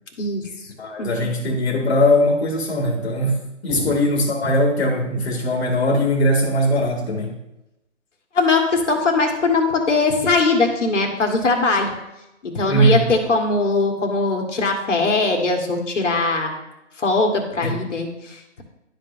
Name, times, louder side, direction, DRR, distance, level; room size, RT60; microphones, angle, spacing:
voice 1, 0.2-0.5 1.0-1.1 3.7-3.9 8.3-11.9 12.4-16.5 17.0-18.6, left 3 dB, 70° left, 2 dB, 1.7 m, -20 dB
voice 2, 0.8-7.4 12.7-13.0 17.6-17.7, equal, 55° left, 0 dB, 1.7 m, -20 dB
12.0 x 5.3 x 2.7 m, 0.92 s
hypercardioid pair, 155°, 38 cm